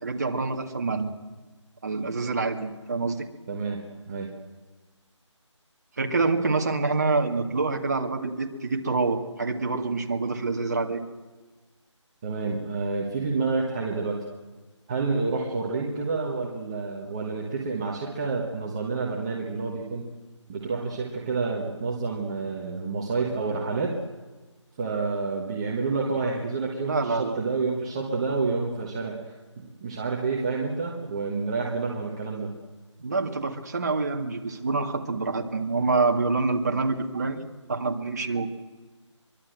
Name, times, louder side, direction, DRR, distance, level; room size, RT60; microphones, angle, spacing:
voice 1, 0.0-1.1 1.8-3.3 6.0-11.0 26.9-27.4 33.0-38.5, right 3 dB, 35° right, 3 dB, 2.1 m, -26 dB
voice 2, 3.5-3.8 4.1-4.3 12.2-14.2 14.9-20.0 20.5-24.0 24.8-29.2 29.8-32.5, right 4 dB, 10° right, -3 dB, 1.3 m, -29 dB
23.5 x 23.5 x 7.9 m, 1.3 s
figure-of-eight pair, 175°, 16 cm